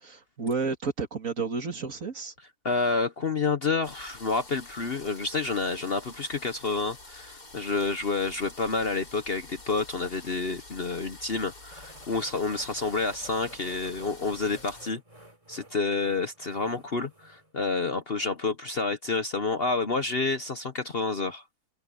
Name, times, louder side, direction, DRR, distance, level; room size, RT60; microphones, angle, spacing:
voice 1, 0.0-2.3, right 4 dB, 55° right, 2.5 m, -31 dB
voice 2, 2.6-15.0 15.5-21.4, left 4 dB, 40° left, 1.1 m, -29 dB
sound 1, 3.8-14.9, left 2 dB, 70° left, 6.0 m, -48 dB
sound 2, 11.7-17.5, equal, 20° right, 3.5 m, -52 dB
open air
omnidirectional pair, 1.7 m